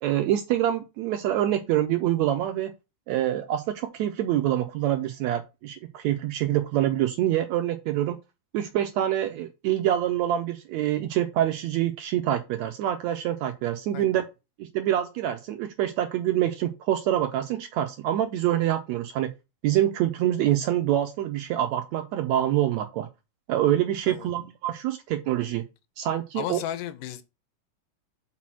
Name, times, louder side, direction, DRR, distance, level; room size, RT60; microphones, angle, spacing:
voice 1, 0.0-2.7 3.1-8.2 8.5-14.3 14.6-19.3 19.6-23.1 23.5-25.6 26.0-26.6, right 12 dB, 80° right, 1.7 m, -26 dB
voice 2, 26.4-27.2, left 11 dB, 80° left, 2.3 m, -34 dB
5.9 x 4.1 x 6.1 m
omnidirectional pair, 3.7 m